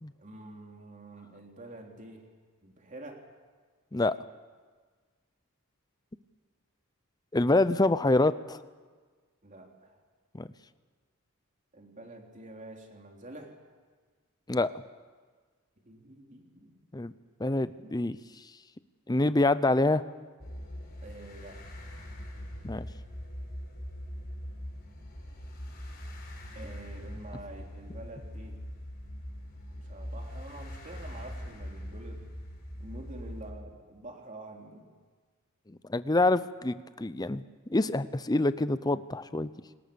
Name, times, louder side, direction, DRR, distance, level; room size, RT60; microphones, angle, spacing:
voice 1, 0.2-2.3 2.6-3.3 9.4-10.0 11.7-13.6 15.9-16.8 17.8-17.9 21.0-22.0 26.6-28.6 29.7-32.2 32.8-34.9, right 2 dB, 35° right, 1 dB, 3.3 m, -47 dB
voice 2, 7.3-8.6 10.3-10.5 14.5-14.7 16.9-17.1 17.4-18.2 19.1-20.0 22.6-22.9 35.9-37.4 37.7-39.5, left 2 dB, 20° left, 14 dB, 0.6 m, -26 dB
sound 1, 20.4-33.5, equal, 45° left, 5.4 m, -42 dB
28.5 x 19.5 x 7.0 m, 1.5 s
head